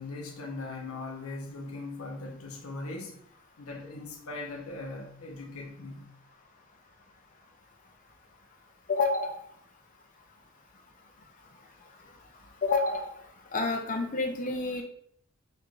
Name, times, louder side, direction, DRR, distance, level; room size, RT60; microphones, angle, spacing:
voice 1, 0.0-3.2 3.6-6.1, left 2 dB, 85° left, 0.9 m, -39 dB
voice 2, 8.9-9.4 12.6-13.2 13.5-14.8, left 3 dB, 40° left, 0.6 m, -28 dB
4.9 x 3.3 x 2.5 m
head